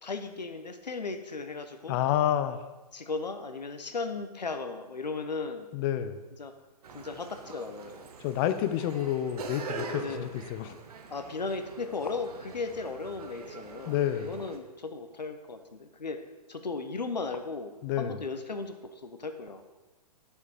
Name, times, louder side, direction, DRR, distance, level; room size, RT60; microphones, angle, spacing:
voice 1, 0.0-2.0 2.9-5.7 6.4-6.5 6.9-8.1 10.0-10.3 11.1-16.2 16.5-19.6, left 4 dB, 85° left, 8 dB, 1.2 m, -36 dB
voice 2, 1.9-2.6 5.7-6.2 8.2-10.8 13.9-14.3 17.8-18.2, left 11 dB, 35° left, 11 dB, 0.8 m, -29 dB
sound 1, 6.8-14.6, right 4 dB, 65° right, 1.4 m, -43 dB
10.5 x 7.0 x 5.1 m, 1.1 s
figure-of-eight pair, 120°, 21 cm